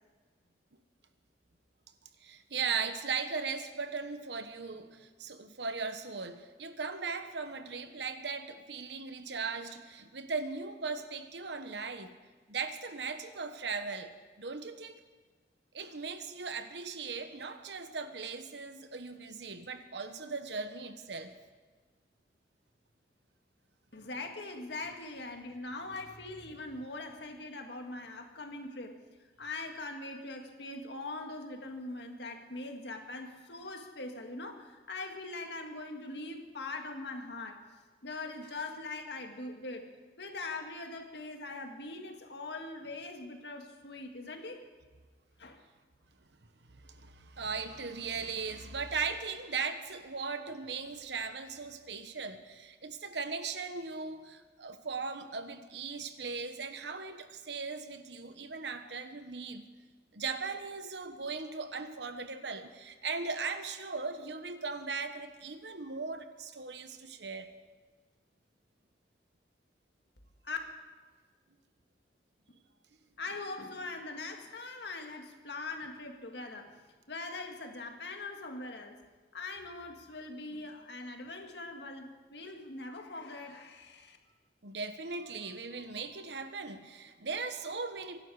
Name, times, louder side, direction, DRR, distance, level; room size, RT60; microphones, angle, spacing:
voice 1, 2.2-12.2 12.5-15.0 15.7-21.3 46.7-59.6 60.1-67.5 84.6-88.2, right 4 dB, 70° right, 9 dB, 1.2 m, -38 dB
voice 2, 23.9-29.0 29.4-37.6 38.0-39.9 40.2-44.6 45.4-45.6 70.4-70.6 73.2-76.8 77.1-79.0 79.3-84.2, left 3 dB, 70° left, 4 dB, 1.9 m, -42 dB
24.5 x 11.5 x 4.9 m, 1.4 s
head